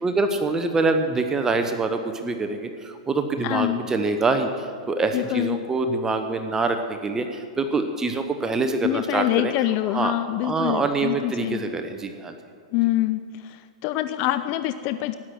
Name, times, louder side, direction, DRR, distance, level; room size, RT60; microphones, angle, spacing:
voice 1, 0.0-9.5 9.9-10.1 10.4-12.3, right 3 dB, 15° right, 6 dB, 1.0 m, -25 dB
voice 2, 3.4-3.8 5.1-5.6 8.8-11.6 12.7-15.1, left 14 dB, 45° left, 11 dB, 0.5 m, -25 dB
13.0 x 9.9 x 6.2 m, 2.4 s
hypercardioid pair, 115°, 3 cm